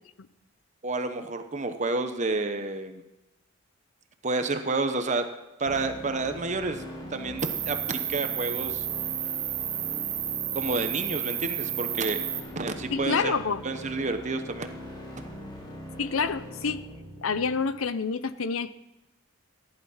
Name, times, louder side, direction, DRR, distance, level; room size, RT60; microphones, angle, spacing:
voice 1, 0.8-3.0 4.2-5.3 5.6-6.8 7.1-8.9 10.5-12.2 12.6-13.3 13.6-14.7, right 3 dB, 35° right, 8 dB, 0.9 m, -29 dB
sound 1, 5.7-17.6, equal, 20° left, 2.2 m, -41 dB
Cricket, 7.4-12.4, right 11 dB, 70° right, 2.3 m, -31 dB
voice 2, 12.9-13.6 16.0-16.8 17.2-18.7, left 5 dB, 90° left, 14 dB, 0.7 m, -28 dB
15.0 x 11.0 x 5.7 m, 0.97 s
head